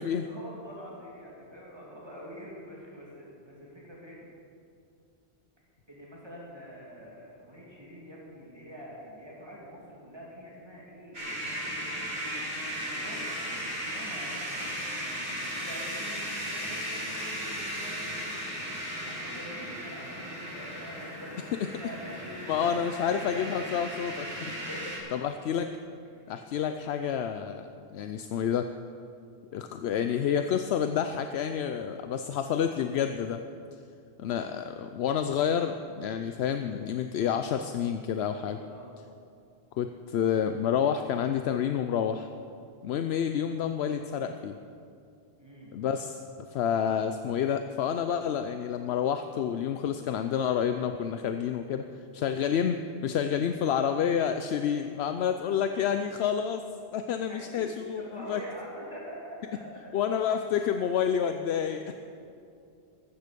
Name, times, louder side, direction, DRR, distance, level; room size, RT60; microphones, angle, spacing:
voice 1, 0.2-4.3 5.9-11.2 12.8-14.4 15.5-18.4 19.0-23.2 24.4-25.0 26.1-26.7 38.6-38.9 45.4-45.7 57.3-57.6 57.9-59.8, equal, 25° right, -5 dB, 2.9 m, -45 dB
sound 1, 11.1-25.0, equal, 70° right, 3.4 m, -36 dB
voice 2, 21.4-21.7 22.5-24.3 25.1-25.7 26.3-28.7 29.5-33.4 34.2-38.6 39.8-42.3 42.8-44.6 45.7-46.2 46.5-51.9 52.1-56.6 56.9-58.4 59.9-61.8, left 8 dB, 75° left, 8 dB, 0.8 m, -29 dB
15.0 x 13.0 x 5.2 m, 2.5 s
omnidirectional pair, 1.1 m